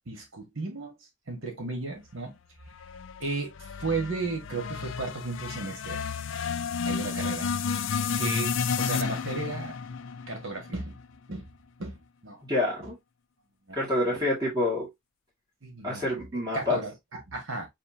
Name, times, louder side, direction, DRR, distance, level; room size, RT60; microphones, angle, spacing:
voice 1, 0.1-0.9 1.3-2.3 3.2-6.0 6.8-7.5 8.2-9.8 10.3-11.0 11.3-11.5 11.8-11.9 12.2-12.4 13.7-13.8 15.6-16.2 16.5-17.7, right 3 dB, 70° right, 1.7 m, -34 dB
sound 1, 2.7-11.0, left 6 dB, 65° left, 0.4 m, -32 dB
voice 2, 12.4-13.0 13.7-14.9 15.8-16.8, left 2 dB, 20° right, 2.0 m, -27 dB
6.8 x 2.8 x 2.7 m
head